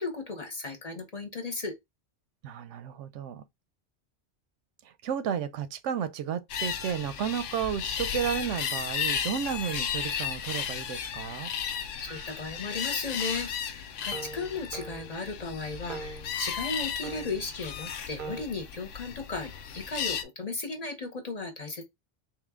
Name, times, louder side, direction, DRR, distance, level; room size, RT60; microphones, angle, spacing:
voice 1, 0.0-1.7 12.0-21.8, left 3 dB, 35° left, 0.9 m, -36 dB
voice 2, 2.4-3.4 4.8-11.5, right 8 dB, 85° right, 0.9 m, -32 dB
sound 1, 6.5-20.2, left 8 dB, 85° left, 1.0 m, -34 dB
Jaw Harp, 12.1-12.5 13.2-13.6 14.1-15.3 15.8-16.3 17.0-17.5 18.2-18.4, right 4 dB, 50° right, 0.7 m, -42 dB
3.7 x 2.9 x 3.6 m
omnidirectional pair, 1.2 m